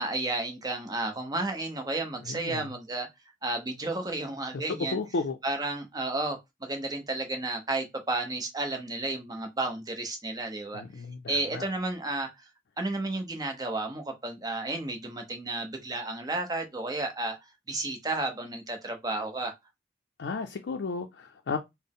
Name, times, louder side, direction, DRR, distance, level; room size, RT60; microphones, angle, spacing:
voice 1, 0.0-3.1 3.4-5.0 5.4-10.8 11.3-12.5 12.8-17.4 17.7-19.5, right 2 dB, 20° right, 0.7 m, -32 dB
voice 2, 2.2-2.7 4.5-5.4 10.7-11.6 20.2-21.6, left 4 dB, 85° left, 0.5 m, -33 dB
4.1 x 2.0 x 3.6 m
head